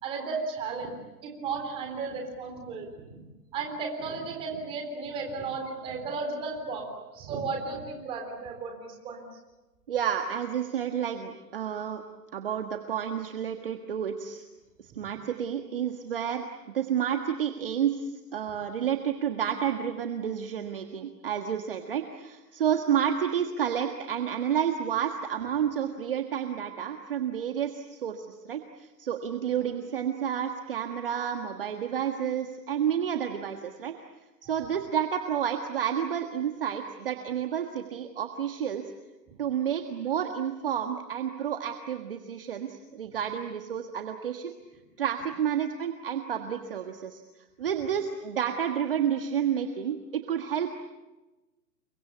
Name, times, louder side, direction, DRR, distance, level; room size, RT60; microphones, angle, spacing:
voice 1, 0.0-0.9 1.2-3.2 3.5-9.2, right 4 dB, 10° right, 2 dB, 3.7 m, -34 dB
voice 2, 9.9-12.0 12.3-14.4 14.8-16.4 16.7-33.9 34.4-38.8 39.4-44.5 45.0-47.2 47.6-50.8, right 9 dB, 35° right, 5 dB, 1.6 m, -30 dB
29.5 x 23.5 x 8.4 m, 1.1 s
hypercardioid pair, 170°, 49 cm